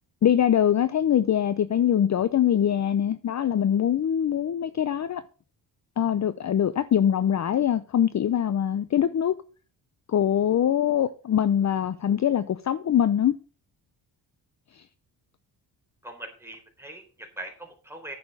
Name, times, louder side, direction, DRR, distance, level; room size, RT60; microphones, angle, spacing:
voice 1, 0.2-5.2 6.0-9.3 10.1-13.3 14.7-14.8, left 9 dB, 40° left, 0.6 m, -23 dB
voice 2, 16.0-18.1, right 1 dB, 5° right, 3.9 m, -41 dB
9.7 x 6.9 x 6.5 m
cardioid pair, 95°, 43 cm